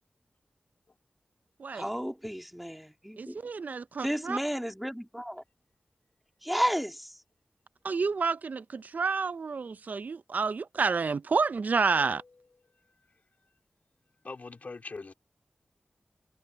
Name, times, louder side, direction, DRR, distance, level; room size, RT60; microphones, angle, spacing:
voice 1, 1.7-3.4 4.0-5.4 6.4-7.2, equal, ahead, 2.5 m, -32 dB
voice 2, 3.2-4.4 7.8-12.2, right 4 dB, 70° right, 0.5 m, -29 dB
voice 3, 14.2-15.1, left 3 dB, 65° left, 3.5 m, -42 dB
wide cardioid pair, 75°, 3 cm